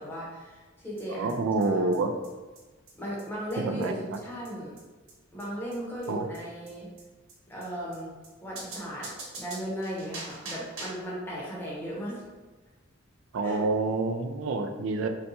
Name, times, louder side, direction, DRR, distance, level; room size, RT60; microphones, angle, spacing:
voice 1, 0.0-1.9 3.0-4.8 5.3-6.9 7.5-8.1 8.4-9.1 9.4-12.2 13.4-13.6 15.0-15.1, equal, 10° left, -6 dB, 0.8 m, -36 dB
sound 1, 1.0-1.1 1.3-1.4 1.6-1.7 1.9-2.0 2.2-2.3 2.5-2.6 2.9-3.0 3.2-3.3 3.5-3.6 3.8-3.9 4.1-4.2 4.4-4.5 4.8-4.9 5.1-5.2 5.4-5.5 5.7-5.8 6.0-6.1 6.3-6.4 6.7-6.8 7.0-7.1 7.3-7.4 7.6-7.7 7.9-8.0 8.2-8.3 8.6-11.1, right 2 dB, 90° right, 1.1 m, -42 dB
voice 2, 1.1-2.1 3.6-3.9 6.1-6.2 13.3-15.1, right 3 dB, 65° right, 6 dB, 0.3 m, -27 dB
3.9 x 2.2 x 2.7 m, 1.3 s
head